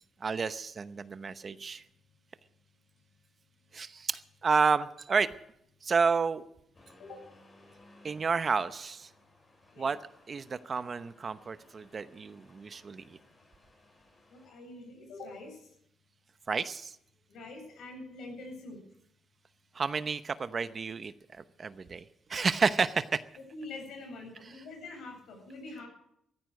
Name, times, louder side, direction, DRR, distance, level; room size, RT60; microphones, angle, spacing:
voice 1, 0.2-1.8 3.7-5.3 5.8-6.4 8.0-9.1 9.8-10.0 10.3-13.2 16.5-16.9 19.7-21.1 21.6-22.0 22.3-23.2, right 5 dB, 40° right, 13 dB, 0.8 m, -30 dB
Accelerating revving vroom, 6.7-14.5, left 1 dB, 30° left, 6.6 m, -61 dB
voice 2, 14.3-15.6 17.3-18.8 23.5-25.9, left 2 dB, 75° left, 3 dB, 7.7 m, -45 dB
15.0 x 14.0 x 6.4 m, 0.72 s
cardioid pair, 90°, 0 cm